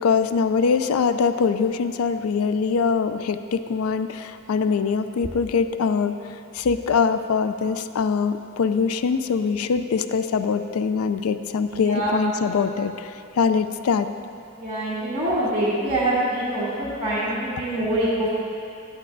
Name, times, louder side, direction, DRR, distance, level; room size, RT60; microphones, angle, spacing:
voice 1, 0.0-6.2 6.5-14.1, left 5 dB, 80° left, 10 dB, 0.4 m, -23 dB
voice 2, 11.7-12.1 14.6-18.3, right 1 dB, 30° right, -11 dB, 1.7 m, -25 dB
12.0 x 10.5 x 2.6 m, 2.5 s
head